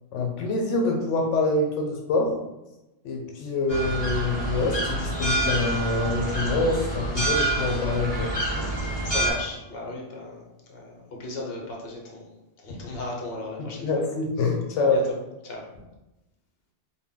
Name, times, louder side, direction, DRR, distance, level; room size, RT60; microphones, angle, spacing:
voice 1, 0.1-2.4 3.0-8.3 13.8-15.0, left 3 dB, 85° left, 1 dB, 0.9 m, -25 dB
sound 1, 3.7-9.3, right 2 dB, 20° left, 1.4 m, -27 dB
voice 2, 9.0-12.3 12.6-13.9 14.8-15.0 15.4-15.6, left 2 dB, 60° left, -1 dB, 1.0 m, -36 dB
3.5 x 2.2 x 3.6 m, 0.98 s
omnidirectional pair, 1.2 m